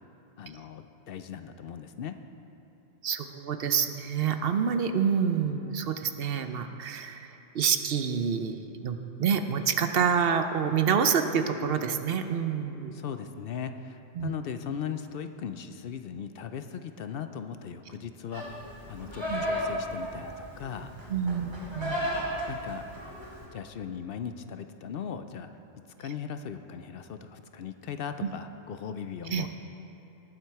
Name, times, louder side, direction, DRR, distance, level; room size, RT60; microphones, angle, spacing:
voice 1, 0.4-2.2 12.9-18.5 18.9-20.9 22.0-22.1 22.5-22.8 23.5-25.5 26.0-29.5, left 7 dB, 65° left, 9 dB, 0.7 m, -38 dB
voice 2, 3.0-7.3 7.5-13.0 14.2-14.3 19.3-19.4 21.1-22.0 28.2-28.3 29.3-29.5, right 7 dB, 65° right, 8 dB, 0.8 m, -27 dB
Livestock farm animals working animals, 18.3-23.4, equal, 25° right, 2.7 m, -34 dB
19.0 x 7.4 x 4.7 m, 3.0 s
omnidirectional pair, 1.1 m